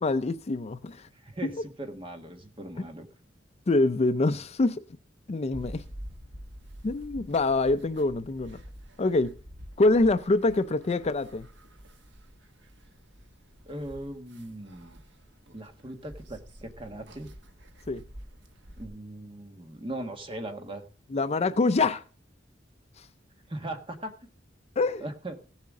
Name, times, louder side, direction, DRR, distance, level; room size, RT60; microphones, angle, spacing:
voice 1, 0.0-1.1 1.4-1.5 3.7-4.8 5.3-5.8 6.8-8.6 9.0-9.3 9.8-11.5 17.9-18.0 21.1-22.0 23.0-23.1 24.8-25.0, left 2 dB, 35° left, 0.5 m, -25 dB
voice 2, 1.1-3.1 13.7-15.0 15.5-17.3 18.8-20.8 23.5-24.1 25.0-25.4, right 1 dB, 30° right, 1.5 m, -39 dB
sound 1, 5.5-18.9, equal, 65° right, 1.4 m, -48 dB
16.5 x 7.2 x 3.7 m
head